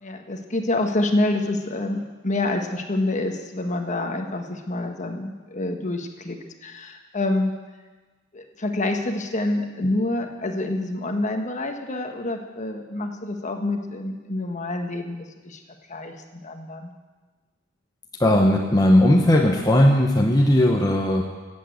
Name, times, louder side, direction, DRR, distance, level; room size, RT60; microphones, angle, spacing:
voice 1, 0.0-7.5 8.3-15.6 15.9-16.9, left 2 dB, 40° left, 5 dB, 1.3 m, -27 dB
voice 2, 18.2-21.2, left 1 dB, 20° left, 0 dB, 1.0 m, -17 dB
15.5 x 8.6 x 7.9 m, 1.3 s
head